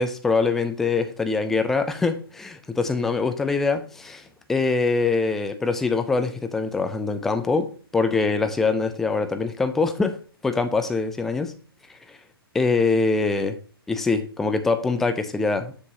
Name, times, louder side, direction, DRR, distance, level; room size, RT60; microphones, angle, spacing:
voice 1, 0.0-10.2 10.4-11.5 11.9-12.2 12.5-13.6 13.9-15.7, left 4 dB, 5° left, 8 dB, 0.3 m, -24 dB
7.3 x 6.5 x 2.8 m, 0.40 s
figure-of-eight pair, 135°, 13 cm